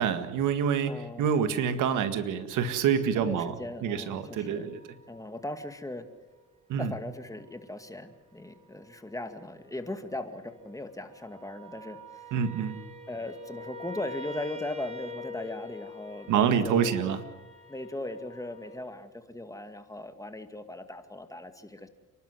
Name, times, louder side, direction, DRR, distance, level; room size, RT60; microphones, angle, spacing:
voice 1, 0.0-3.5 3.8-4.8 6.7-6.9 12.3-12.9 16.3-17.2, right 8 dB, 85° right, 10 dB, 1.8 m, -27 dB
voice 2, 0.8-1.3 3.2-4.7 5.1-6.1 6.8-12.0 13.1-17.2 17.7-21.9, left 1 dB, 10° left, 8 dB, 2.2 m, -38 dB
sound 1, 2.5-5.7 6.8-6.9 7.3-7.8 8.4-8.9 9.2-18.9, left 2 dB, 20° right, 5.1 m, -46 dB
30.0 x 12.0 x 9.5 m, 1.1 s
cardioid pair, 90°, 30 cm